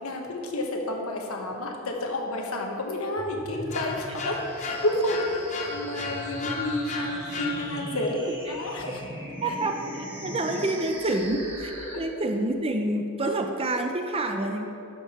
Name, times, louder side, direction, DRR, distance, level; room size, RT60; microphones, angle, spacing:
voice 1, 0.0-9.0 9.4-9.5 11.9-12.0, left 1 dB, 70° left, 1 dB, 1.3 m, -30 dB
sound 1, 3.2-12.0, equal, 10° right, 1.6 m, -40 dB
sound 2, 3.7-8.1, left 4 dB, 35° left, 0.9 m, -35 dB
voice 2, 7.9-8.6 9.4-14.7, right 2 dB, 25° right, 5 dB, 0.6 m, -28 dB
11.5 x 7.0 x 4.3 m, 2.9 s
head